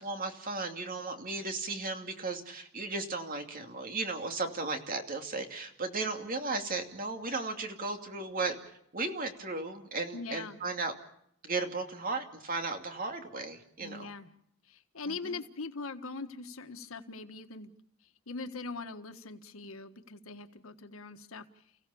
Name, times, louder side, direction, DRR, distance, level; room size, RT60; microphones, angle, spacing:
voice 1, 0.0-8.6 8.9-10.9 11.4-14.1 15.1-15.4, right 3 dB, 45° right, 5 dB, 2.6 m, -35 dB
voice 2, 10.1-10.6 13.8-14.3 14.7-17.7 18.3-21.5, left 3 dB, 90° left, 8 dB, 1.5 m, -41 dB
30.0 x 16.5 x 7.0 m, 0.72 s
head